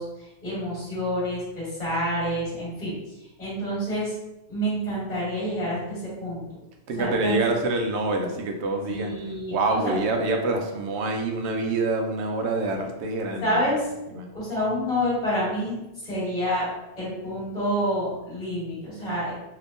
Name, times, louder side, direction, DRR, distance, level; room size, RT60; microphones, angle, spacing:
voice 1, 0.0-2.9 3.4-4.1 4.5-6.4 7.0-7.4 8.9-9.9 13.4-13.9 14.3-15.8 16.0-16.7 16.9-19.3, equal, 40° left, -9 dB, 1.5 m, -28 dB
voice 2, 6.9-9.2 9.5-13.6 14.1-14.3, right 2 dB, 75° right, 4 dB, 0.8 m, -26 dB
3.5 x 2.8 x 2.5 m, 0.94 s
omnidirectional pair, 1.1 m